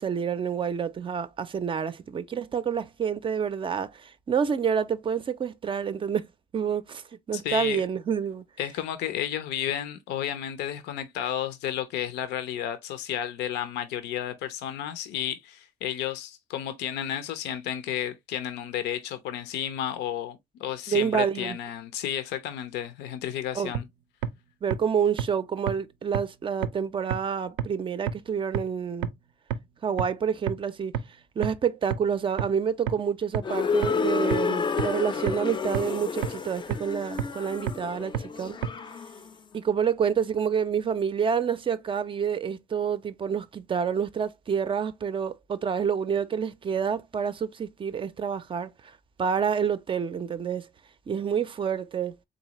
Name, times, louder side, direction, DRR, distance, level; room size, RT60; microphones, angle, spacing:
voice 1, 0.0-6.3 6.5-8.4 20.9-21.6 23.5-23.7 24.6-29.1 29.8-30.9 31.4-38.6 39.5-50.7 51.1-52.1, right 7 dB, 30° right, 0.4 m, -28 dB
voice 2, 7.3-7.8 8.6-23.8, left 10 dB, 85° left, 0.6 m, -32 dB
sound 1, 23.7-23.8 24.2-24.3 24.7-24.8 25.2-25.3 25.7-25.8 26.1-26.2 26.6-26.7 27.1-27.2 27.6-27.7 28.1-28.2 28.5-28.6 29.0-29.1 29.5-29.6 30.0-30.1 30.5-30.6 30.9-31.0 31.4-31.5 31.9-32.0 32.4-32.5 32.9-33.0 33.3-33.4 33.8-33.9 34.3-34.4 34.8-34.9 35.3-35.4 35.7-35.8 36.2-36.3 36.7-36.8 37.2-37.3 37.7-37.8 38.1-38.2 38.6-38.7, right 10 dB, 90° right, 0.5 m, -27 dB
sound 2, 33.4-39.3, left 5 dB, 25° left, 0.5 m, -30 dB
4.0 x 3.2 x 2.9 m
cardioid pair, 110°, 17 cm